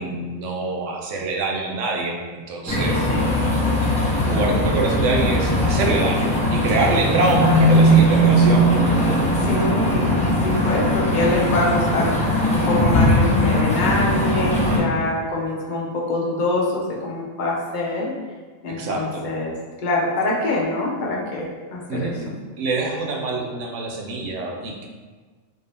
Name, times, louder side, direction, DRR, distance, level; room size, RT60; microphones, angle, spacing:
voice 1, 0.0-3.0 4.3-8.7 14.5-14.9 18.7-19.2 21.9-22.3 22.6-24.9, right 3 dB, 70° right, 0 dB, 0.9 m, -25 dB
sound 1, 2.7-14.8, equal, 5° left, 0.7 m, -19 dB
voice 2, 7.3-8.0 9.4-18.2 18.6-19.5 19.8-22.1, left 2 dB, 50° left, -3 dB, 0.6 m, -25 dB
3.6 x 2.6 x 3.3 m, 1.4 s
omnidirectional pair, 1.4 m